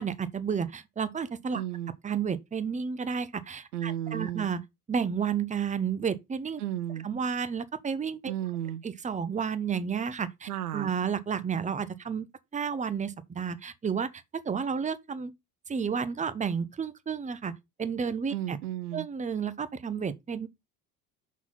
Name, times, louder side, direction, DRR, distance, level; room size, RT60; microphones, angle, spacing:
voice 1, 0.0-1.6 2.0-4.6 4.9-6.6 7.0-8.3 8.8-12.3 12.5-15.3 15.7-18.6 18.9-20.5, right 6 dB, 15° right, 0.8 m, -31 dB
voice 2, 1.5-1.9 3.7-4.5 6.6-7.1 8.3-8.8 10.5-10.9 18.3-19.1, right 12 dB, 80° right, 0.6 m, -33 dB
5.9 x 4.1 x 5.6 m
figure-of-eight pair, 55°, 45 cm